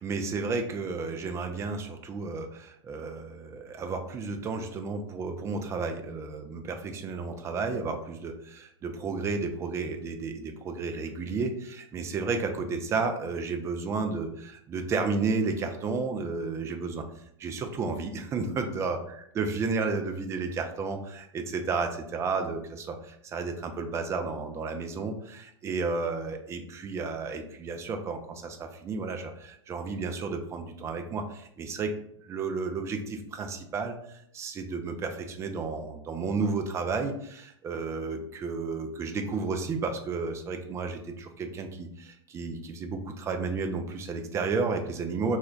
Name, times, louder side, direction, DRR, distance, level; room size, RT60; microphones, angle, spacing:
voice 1, 0.0-17.1 17.4-19.0 19.4-31.9 32.2-45.4, right 4 dB, 20° right, 6 dB, 0.3 m, -32 dB
2.2 x 2.2 x 3.7 m, 0.72 s
figure-of-eight pair, 95°, 16 cm